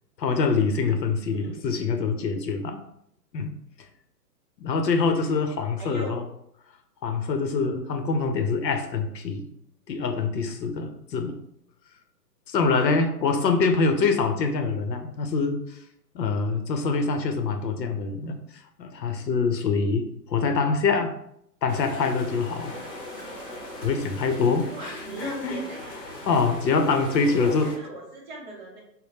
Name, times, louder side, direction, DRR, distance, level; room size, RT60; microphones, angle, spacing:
voice 1, 0.2-2.8 3.3-3.5 4.6-6.2 7.0-9.5 9.9-11.4 12.5-15.8 16.1-18.4 18.8-21.1 21.6-22.7 23.8-25.6 26.2-27.7, left 4 dB, 80° left, 6 dB, 0.8 m, -25 dB
voice 2, 1.3-1.8 5.8-6.2 24.7-25.8 27.2-28.8, right 3 dB, 30° right, -3 dB, 0.8 m, -38 dB
sound 1, 21.7-27.8, left 1 dB, 30° left, 0.9 m, -40 dB
3.5 x 2.2 x 4.1 m, 0.74 s
hypercardioid pair, 165°, 50 cm